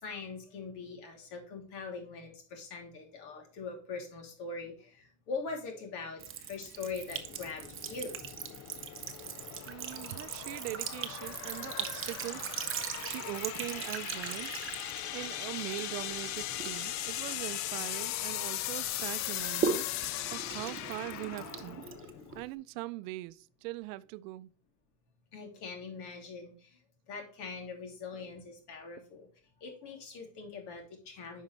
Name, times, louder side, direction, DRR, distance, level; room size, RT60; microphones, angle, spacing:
voice 1, 0.0-8.2 22.3-22.4 25.3-26.8 27.1-29.3 29.6-31.4, left 4 dB, 55° left, 3.1 m, -42 dB
Sink (filling or washing) / Trickle dribble, 6.2-18.3 18.7-22.6, right 7 dB, 25° right, 1.0 m, -40 dB
sound 1, 7.1-22.5, left 14 dB, 40° left, 0.4 m, -39 dB
voice 2, 9.7-12.5 13.0-14.5 15.1-19.9 20.3-21.8 22.3-24.5, right 18 dB, 75° right, 0.6 m, -41 dB
Chirp tweet, 11.6-18.2, right 4 dB, 10° right, 0.7 m, -54 dB
9.7 x 5.5 x 3.2 m
supercardioid pair, 120°, 47 cm